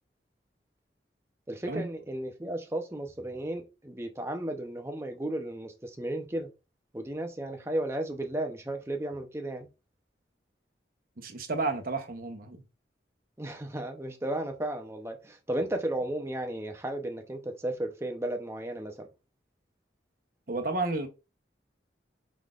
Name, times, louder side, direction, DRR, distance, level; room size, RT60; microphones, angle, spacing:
voice 1, 1.5-6.5 6.9-9.7 13.4-19.1, right 1 dB, 15° right, 0.7 m, -34 dB
voice 2, 11.2-12.6 20.5-21.1, right 3 dB, 55° right, 0.9 m, -31 dB
5.0 x 4.0 x 2.5 m
head